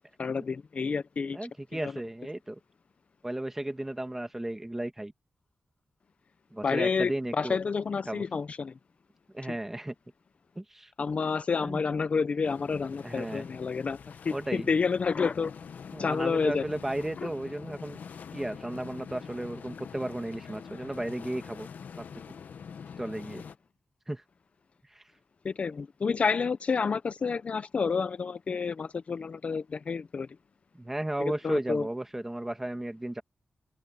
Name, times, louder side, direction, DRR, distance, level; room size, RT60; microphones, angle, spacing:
voice 1, 0.2-1.4 6.6-8.7 11.0-14.0 14.2-15.5 16.0-16.6 17.2-17.3 25.4-30.3 31.4-31.9, left 5 dB, 50° left, 0.6 m, -29 dB
voice 2, 1.3-2.6 3.2-5.1 6.5-7.6 8.1-8.2 9.3-9.9 10.6-10.9 11.6-11.8 13.0-13.5 14.3-14.7 15.9-18.0 18.3-21.7 22.0-22.1 23.0-23.4 24.1-24.2 24.9-25.0 30.7-33.2, right 1 dB, 10° right, 1.8 m, -34 dB
sound 1, 12.4-23.6, left 6 dB, 85° left, 1.2 m, -45 dB
wide cardioid pair, 150°, 3 cm